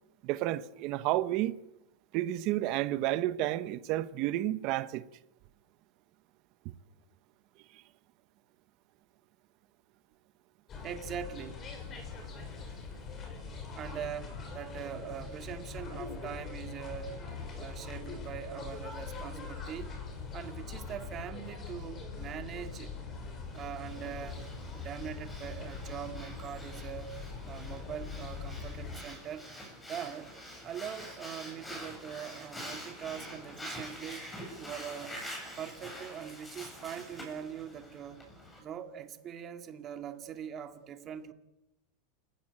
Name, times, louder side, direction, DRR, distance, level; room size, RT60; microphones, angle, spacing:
voice 1, 0.2-1.6 2.1-5.0, right 15 dB, 45° right, 1.1 m, -31 dB
sound 1, 10.7-29.0, left 4 dB, 25° left, 6.5 m, -42 dB
voice 2, 10.8-11.6 13.8-17.2 17.6-19.9 20.3-22.9 23.5-24.4 24.7-27.2 27.5-29.5 29.9-30.3 30.6-34.3 34.6-35.2 35.6-38.3 38.6-41.3, right 9 dB, 30° right, 2.2 m, -42 dB
Breathing, 23.5-38.6, equal, 10° left, 7.9 m, -46 dB
28.5 x 16.0 x 9.0 m
supercardioid pair, 150°, 0 cm